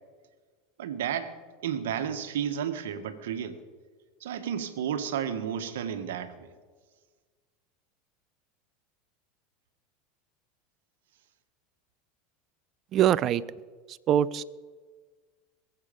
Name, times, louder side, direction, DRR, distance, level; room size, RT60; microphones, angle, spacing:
voice 1, 0.8-3.6 4.2-6.5, right 8 dB, 75° right, 9 dB, 1.3 m, -32 dB
voice 2, 12.9-13.4 14.1-14.4, right 11 dB, 45° right, 19 dB, 0.5 m, -22 dB
21.5 x 8.1 x 5.2 m, 1.5 s
hypercardioid pair, 90°, 0 cm